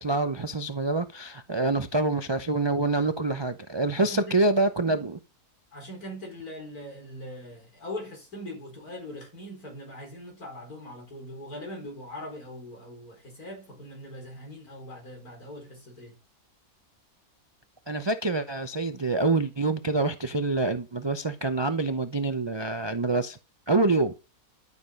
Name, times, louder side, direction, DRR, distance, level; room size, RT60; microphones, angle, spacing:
voice 1, 0.0-5.2 17.9-23.4 23.7-24.1, right 2 dB, 45° right, 0.3 m, -26 dB
voice 2, 4.0-4.4 5.7-16.2, left 1 dB, 75° left, 5.2 m, -41 dB
12.5 x 6.7 x 5.3 m
omnidirectional pair, 1.6 m